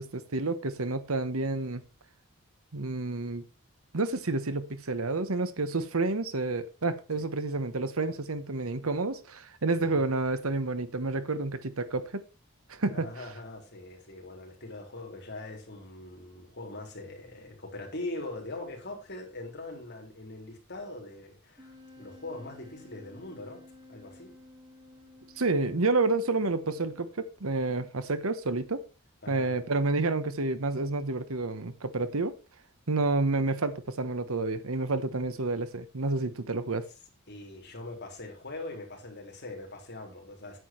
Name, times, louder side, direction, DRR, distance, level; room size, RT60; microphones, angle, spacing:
voice 1, 0.0-1.8 2.7-3.4 3.9-12.2 12.7-13.1 25.4-28.8 29.3-32.3 32.9-36.9, right 3 dB, 80° right, 1.1 m, -29 dB
voice 2, 9.7-10.1 12.9-23.6 23.9-24.3 29.2-29.6 37.3-40.6, left 2 dB, 50° left, 3.7 m, -42 dB
Wind instrument woodwind instrument, 21.6-27.2, left 2 dB, 20° right, 2.0 m, -54 dB
9.3 x 8.5 x 4.5 m
head